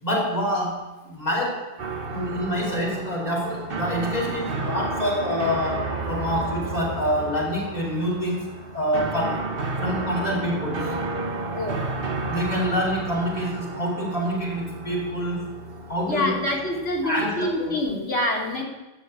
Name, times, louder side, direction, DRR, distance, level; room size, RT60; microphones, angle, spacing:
voice 1, 0.0-1.7 2.1-9.5 9.8-11.0 12.3-15.5 15.9-16.5 17.0-17.8, equal, 35° left, -3 dB, 4.3 m, -26 dB
sound 1, 1.8-17.7, right 3 dB, 55° right, 1.3 m, -32 dB
voice 2, 16.1-18.6, left 1 dB, 75° left, -2 dB, 2.8 m, -26 dB
13.5 x 6.3 x 8.3 m, 1.1 s
omnidirectional pair, 1.2 m